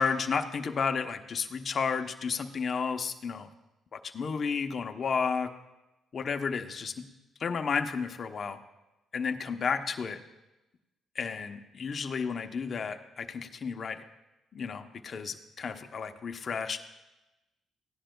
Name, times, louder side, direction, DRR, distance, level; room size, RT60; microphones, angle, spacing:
voice 1, 0.0-3.5 3.9-5.5 6.1-7.1 7.4-8.6 9.1-10.2 11.1-14.0 14.5-16.8, left 5 dB, 45° left, 6 dB, 0.8 m, -32 dB
16.0 x 10.0 x 2.2 m, 0.99 s
cardioid pair, 90°, 0 cm